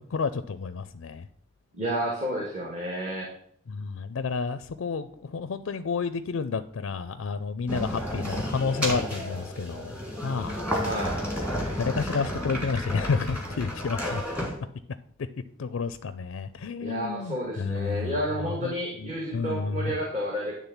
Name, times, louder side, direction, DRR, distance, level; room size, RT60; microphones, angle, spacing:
voice 1, 0.1-1.3 3.7-9.9 10.2-10.6 11.8-14.5 15.6-18.1 18.4-18.7 19.0-20.0, left 5 dB, 75° left, 12 dB, 0.4 m, -30 dB
voice 2, 1.8-3.3 10.8-11.2 16.8-20.6, equal, 35° right, -3 dB, 1.7 m, -31 dB
sound 1, 7.7-14.6, equal, 5° right, 1.6 m, -32 dB
9.8 x 3.6 x 7.1 m, 0.65 s
head